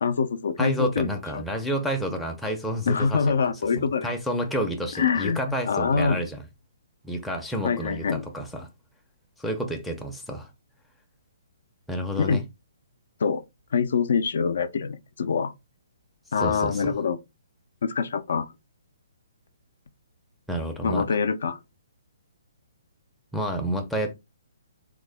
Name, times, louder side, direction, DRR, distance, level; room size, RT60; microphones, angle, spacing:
voice 1, 0.0-1.1 1.3-1.4 2.9-4.1 4.9-6.2 7.6-8.3 12.2-12.4 13.2-13.4 13.7-15.5 16.3-17.2 17.8-18.5 20.8-21.6, left 5 dB, 65° left, 0.4 m, -25 dB
voice 2, 0.6-3.4 3.8-6.4 7.0-8.7 9.4-10.5 11.9-12.4 16.4-17.0 20.5-21.1 23.3-24.1, right 1 dB, ahead, 0.5 m, -30 dB
3.5 x 2.0 x 3.3 m
hypercardioid pair, 160°, 0 cm